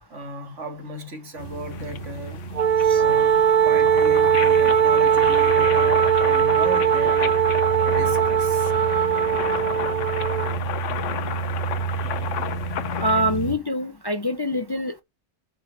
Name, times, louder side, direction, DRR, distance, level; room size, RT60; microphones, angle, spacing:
voice 1, 0.1-2.4 2.9-7.4 7.8-8.7, right 1 dB, 75° right, 2.3 m, -36 dB
sound 1, 1.4-13.6, right 5 dB, 50° left, 1.3 m, -31 dB
sound 2, 1.7-13.2, left 9 dB, 80° left, 1.1 m, -33 dB
Wind instrument woodwind instrument, 2.5-10.6, right 8 dB, 45° right, 0.5 m, -19 dB
voice 2, 13.0-15.0, equal, 25° left, 0.6 m, -25 dB
7.8 x 5.0 x 7.2 m
omnidirectional pair, 1.3 m